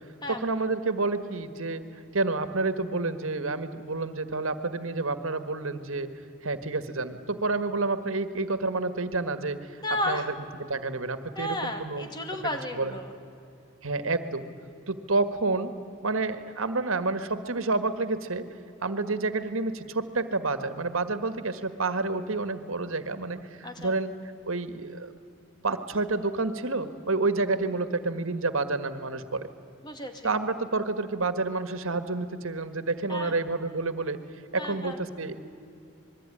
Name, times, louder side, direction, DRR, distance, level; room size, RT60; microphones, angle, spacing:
voice 1, 0.3-1.8 2.1-6.1 6.4-9.8 10.1-10.2 10.6-12.1 12.8-12.9 13.8-14.4 14.9-15.7 16.0-18.5 18.8-24.1 24.4-25.1 25.6-29.5 30.2-34.2 34.5-35.5, right 3 dB, 70° right, 11 dB, 1.6 m, -29 dB
voice 2, 9.8-10.3 11.4-13.1 23.6-23.9 29.8-30.3 33.1-33.3 34.6-35.0, left 1 dB, 20° left, 5 dB, 2.4 m, -33 dB
26.5 x 22.0 x 10.0 m, 2.5 s
head